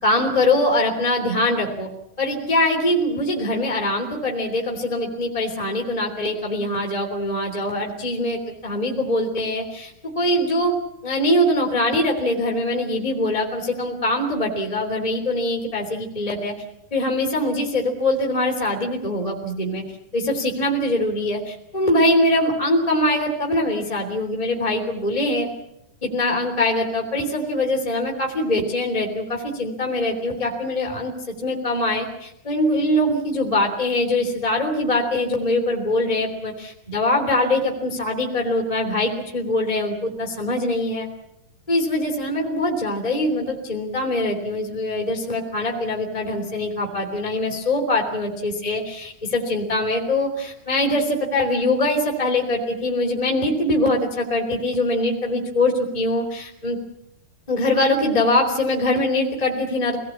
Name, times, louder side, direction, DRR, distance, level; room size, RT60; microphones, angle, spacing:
voice 1, 0.0-1.9 2.2-10.7 11.0-16.5 16.9-19.8 20.1-25.5 26.0-31.1 31.4-41.1 41.7-56.8 57.5-60.0, left 1 dB, 10° left, 0 dB, 2.9 m, -23 dB
25.5 x 19.0 x 8.4 m, 0.81 s
omnidirectional pair, 4.4 m